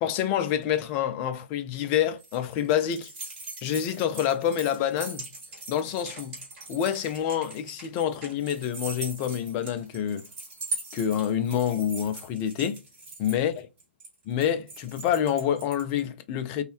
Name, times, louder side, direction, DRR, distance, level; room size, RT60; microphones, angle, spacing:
voice 1, 0.0-3.1 3.6-5.2 5.7-6.4 6.7-10.2 10.9-12.8 13.2-13.5 14.3-16.6, left 9 dB, 20° left, 0.3 m, -27 dB
sound 1, 1.7-16.0, right 3 dB, 25° right, 1.6 m, -41 dB
2.6 x 2.3 x 3.0 m
figure-of-eight pair, 130°, 6 cm